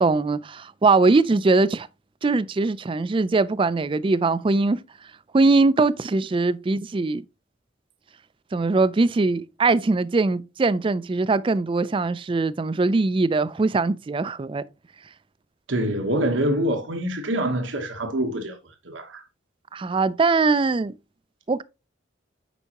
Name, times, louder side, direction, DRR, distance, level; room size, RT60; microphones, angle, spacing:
voice 1, 0.0-1.9 2.2-4.8 5.3-7.2 8.5-14.6 19.7-20.9 21.5-21.6, right 3 dB, 25° right, 0.4 m, -21 dB
voice 2, 15.7-18.6 18.8-19.2, right 1 dB, 80° right, 1.1 m, -25 dB
8.1 x 5.5 x 2.9 m
head